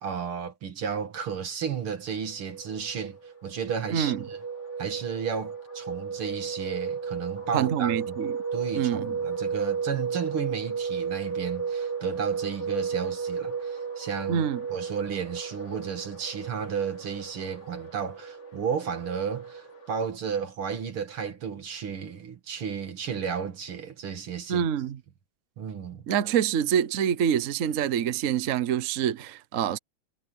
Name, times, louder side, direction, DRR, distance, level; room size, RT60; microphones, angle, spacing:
voice 1, 0.0-3.2 3.4-4.4 4.8-8.2 8.5-24.7 25.6-26.1, right 7 dB, 75° right, 3.0 m, -33 dB
sound 1, 2.3-20.0, right 6 dB, 35° left, 2.3 m, -34 dB
voice 2, 3.9-4.2 7.5-8.3 8.7-9.1 14.3-14.6 24.5-25.0 26.1-29.8, right 9 dB, 55° right, 0.9 m, -26 dB
omnidirectional pair, 2.4 m